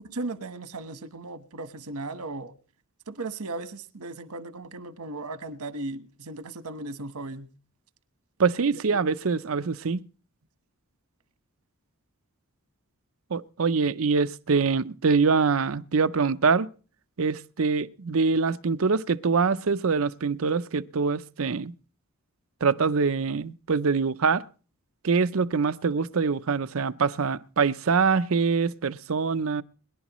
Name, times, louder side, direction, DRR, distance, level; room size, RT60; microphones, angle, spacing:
voice 1, 0.0-2.5 3.1-7.5, right 2 dB, 90° right, 1.2 m, -36 dB
voice 2, 8.4-10.0 13.3-16.7 17.2-21.7 22.6-24.4 25.0-29.6, right 5 dB, 65° right, 0.6 m, -24 dB
22.0 x 11.0 x 3.0 m
head